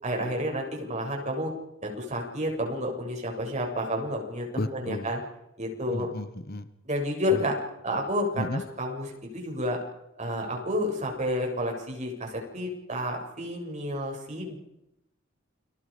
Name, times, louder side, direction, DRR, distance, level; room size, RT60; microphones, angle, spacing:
voice 1, 0.0-1.5 1.8-5.2 5.6-6.1 6.8-7.6 7.8-9.8 10.2-14.6, equal, 35° right, 1 dB, 7.5 m, -30 dB
voice 2, 4.5-5.1 5.9-6.7 7.3-7.4 8.4-8.6, left 1 dB, 50° left, 12 dB, 1.3 m, -33 dB
30.0 x 23.5 x 5.2 m, 0.82 s
head